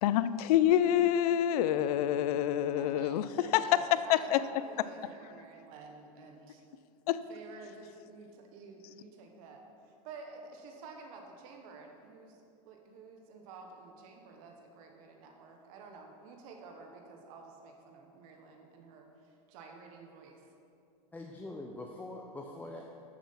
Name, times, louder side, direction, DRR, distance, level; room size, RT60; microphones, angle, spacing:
voice 1, 0.0-3.6 4.1-4.4 7.1-7.2, left 11 dB, 70° left, 14 dB, 0.4 m, -27 dB
voice 2, 2.7-6.6 7.3-12.4 12.6-20.4, right 4 dB, 65° right, 2 dB, 1.2 m, -50 dB
voice 3, 21.1-23.0, left 2 dB, 10° left, 0 dB, 0.6 m, -43 dB
7.4 x 7.3 x 5.6 m, 2.5 s
supercardioid pair, 120°, 20 cm